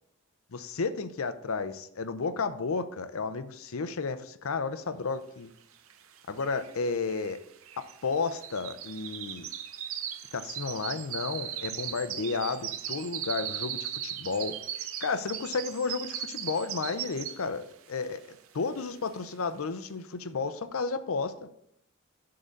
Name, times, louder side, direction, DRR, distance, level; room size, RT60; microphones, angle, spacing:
voice 1, 0.5-5.5 6.3-7.4 7.8-9.5 10.3-14.6 15.0-21.5, left 4 dB, 80° left, 11 dB, 0.6 m, -32 dB
sound 1, 5.9-6.0 6.2-17.6 18.0-18.3 18.8-18.9, right 10 dB, 70° right, 0.6 m, -38 dB
8.1 x 3.8 x 6.6 m, 0.76 s
head